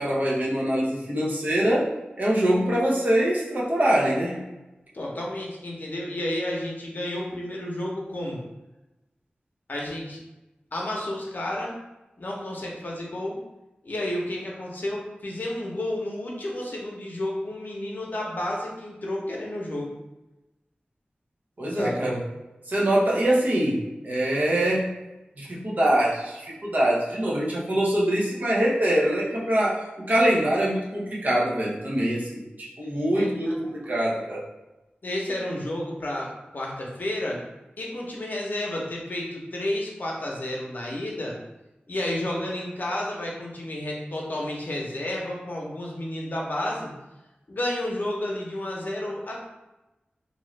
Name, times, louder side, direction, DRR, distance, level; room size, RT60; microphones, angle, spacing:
voice 1, 0.0-1.9 2.2-4.4 21.6-22.2 22.7-24.9 25.4-32.4 32.8-34.4, right 1 dB, 55° right, -5 dB, 0.8 m, -24 dB
voice 2, 4.9-8.4 9.7-10.2 10.7-11.7 12.2-13.4 13.8-19.9 21.7-22.1 33.1-33.7 35.0-37.4 37.8-41.4 41.9-46.9 47.5-49.5, left 1 dB, 60° left, -2 dB, 0.7 m, -31 dB
2.6 x 2.4 x 3.1 m, 1.0 s
wide cardioid pair, 70°, 3 cm